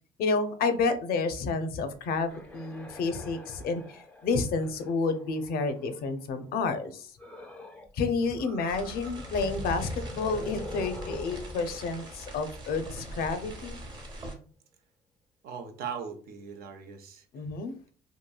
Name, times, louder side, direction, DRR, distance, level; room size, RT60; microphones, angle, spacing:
voice 1, 0.2-7.1 7.9-13.8 17.3-17.7, left 4 dB, 65° left, 9 dB, 0.5 m, -30 dB
sound 1, 2.3-6.1 7.2-7.9 8.2-13.1, left 1 dB, 10° left, 0.5 m, -43 dB
sound 2, 8.7-14.3, right 1 dB, 25° right, 0.8 m, -43 dB
voice 2, 15.4-17.2, right 7 dB, 65° right, 6 dB, 0.6 m, -39 dB
2.9 x 2.6 x 2.3 m, 0.43 s
cardioid pair, 110°, 17 cm